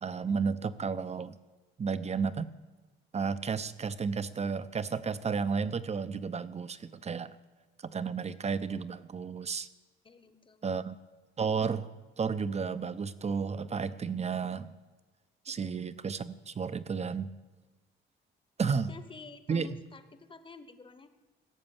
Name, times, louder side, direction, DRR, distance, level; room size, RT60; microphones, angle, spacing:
voice 1, 0.0-1.3 1.8-2.5 3.1-7.3 7.8-9.7 10.6-11.0 11.4-11.9 12.2-14.7 15.5-17.3 18.6-18.9 19.5-19.7, right 5 dB, 35° right, 14 dB, 0.7 m, -32 dB
voice 2, 10.0-10.7 15.5-15.7 18.6-21.1, left 4 dB, 25° left, 10 dB, 1.1 m, -50 dB
16.5 x 6.9 x 7.2 m, 1.3 s
cardioid pair, 90°, 20 cm